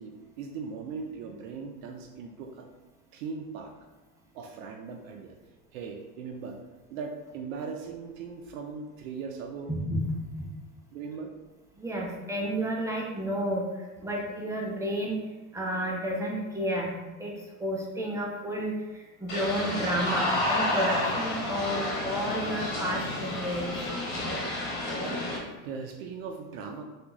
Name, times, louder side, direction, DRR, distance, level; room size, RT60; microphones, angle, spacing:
voice 1, 0.0-2.7 3.1-3.7 4.3-5.4 5.7-6.6 6.9-9.7 10.9-11.3 25.6-26.8, right 5 dB, 65° right, 3 dB, 0.5 m, -39 dB
voice 2, 9.7-10.5 11.8-15.2 15.5-17.3 17.6-23.8, equal, 5° right, -2 dB, 0.5 m, -31 dB
sound 1, 19.3-25.4, left 1 dB, 50° left, 1.3 m, -30 dB
3.5 x 2.4 x 2.9 m, 1.2 s
hypercardioid pair, 100°, 43 cm